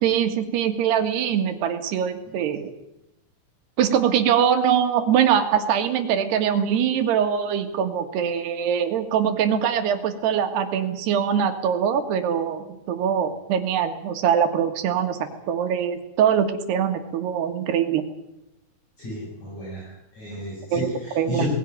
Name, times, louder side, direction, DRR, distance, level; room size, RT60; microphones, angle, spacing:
voice 1, 0.0-2.7 3.8-15.2 15.5-18.0 20.7-20.9 21.2-21.5, right 8 dB, 85° right, 7 dB, 3.8 m, -23 dB
voice 2, 19.0-21.5, equal, 45° left, -5 dB, 8.7 m, -32 dB
20.0 x 16.0 x 9.4 m, 0.91 s
omnidirectional pair, 4.6 m